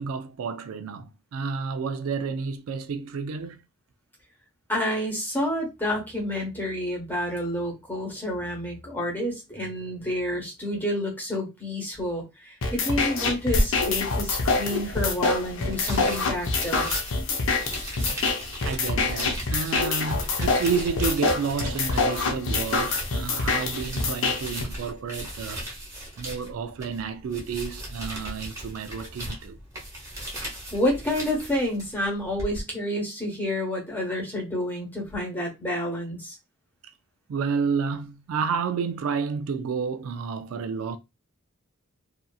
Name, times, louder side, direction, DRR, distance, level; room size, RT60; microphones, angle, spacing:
voice 1, 0.0-3.6 18.6-25.6 26.2-29.6 37.3-41.0, right 5 dB, 70° right, 0.3 m, -30 dB
voice 2, 4.7-16.9 30.7-36.3, left 1 dB, 10° left, 1.1 m, -29 dB
sound 1, 12.6-24.6, left 3 dB, 65° left, 0.6 m, -26 dB
sound 2, 13.5-32.6, equal, 15° right, 1.0 m, -36 dB
2.7 x 2.4 x 2.3 m
head